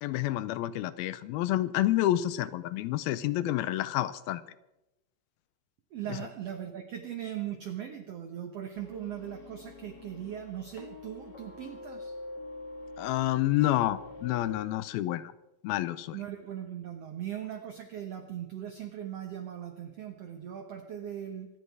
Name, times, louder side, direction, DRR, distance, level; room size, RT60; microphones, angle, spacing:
voice 1, 0.0-4.4 13.0-15.3 15.6-16.2, left 14 dB, 80° left, 15 dB, 2.5 m, -29 dB
voice 2, 5.9-12.1 16.1-21.5, right 10 dB, 85° right, 5 dB, 1.3 m, -39 dB
sound 1, 8.7-14.7, left 2 dB, 40° left, 1.6 m, -45 dB
25.0 x 10.5 x 4.7 m, 0.95 s
omnidirectional pair, 4.4 m